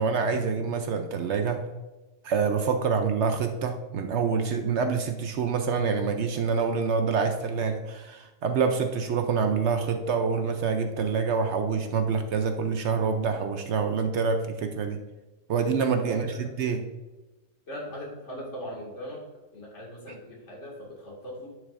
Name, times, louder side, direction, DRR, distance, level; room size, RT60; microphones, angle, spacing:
voice 1, 0.0-1.7 2.2-15.0 15.5-16.8, right 5 dB, 65° right, 7 dB, 0.9 m, -26 dB
voice 2, 16.0-16.7 17.7-19.2 19.5-21.5, equal, 60° left, -3 dB, 2.4 m, -39 dB
10.5 x 6.5 x 2.5 m, 1.1 s
omnidirectional pair, 1.4 m